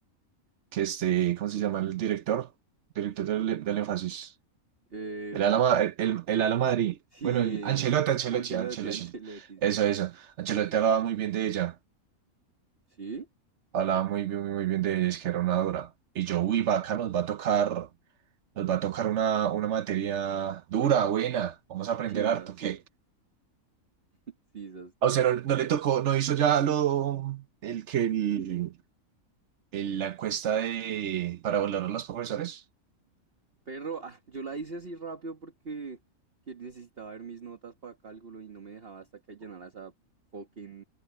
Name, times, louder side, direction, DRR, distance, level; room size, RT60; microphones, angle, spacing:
voice 1, 0.7-2.5 3.0-4.3 5.3-7.0 7.2-9.1 9.6-11.7 13.7-15.9 16.1-17.9 18.6-22.8 25.0-28.7 29.7-32.6, right 10 dB, 60° right, 0.9 m, -27 dB
voice 2, 4.9-5.6 7.1-8.0 8.3-10.0 12.9-13.3 22.1-22.8 24.5-24.9 33.7-36.0 36.5-39.9 40.3-40.8, right 5 dB, 45° right, 1.7 m, -40 dB
omnidirectional pair, 1.5 m